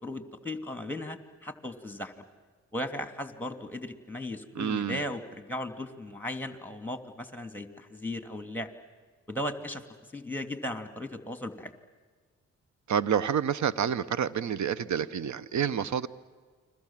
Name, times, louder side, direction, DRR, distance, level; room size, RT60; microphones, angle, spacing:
voice 1, 0.0-2.2 2.7-8.7 9.3-9.8 10.1-11.7, left 1 dB, 5° left, 8 dB, 3.0 m, -37 dB
voice 2, 4.5-5.0 12.9-16.1, right 8 dB, 60° right, 18 dB, 1.1 m, -28 dB
30.0 x 22.5 x 7.6 m, 1.5 s
hypercardioid pair, 45°, 33 cm